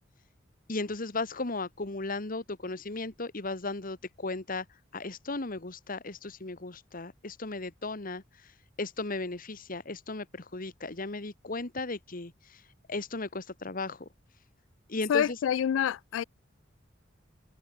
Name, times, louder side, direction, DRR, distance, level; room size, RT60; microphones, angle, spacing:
voice 1, 0.7-4.6 4.9-8.2 8.8-12.6 12.9-14.1 14.9-15.4, left 3 dB, 50° left, 1.6 m, -36 dB
voice 2, 15.1-16.2, left 9 dB, 90° left, 0.3 m, -27 dB
head